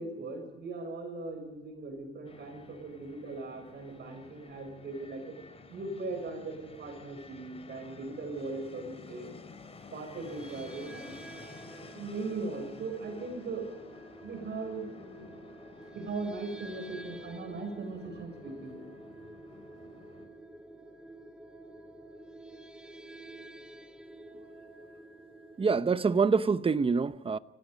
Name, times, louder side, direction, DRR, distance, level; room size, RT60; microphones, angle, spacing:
voice 1, 0.0-5.2 5.7-9.3 9.9-11.1 11.9-13.7 14.2-15.3 15.9-18.8, right 3 dB, 60° right, 6.5 m, -39 dB
Fixed-wing aircraft airplane, 2.3-20.3, left 4 dB, 30° left, 4.7 m, -52 dB
sound 1, 10.2-26.3, right 1 dB, 5° right, 2.2 m, -50 dB
voice 2, 25.6-27.4, right 5 dB, 25° right, 0.9 m, -26 dB
29.5 x 16.5 x 5.2 m
cardioid pair, 90°, 20 cm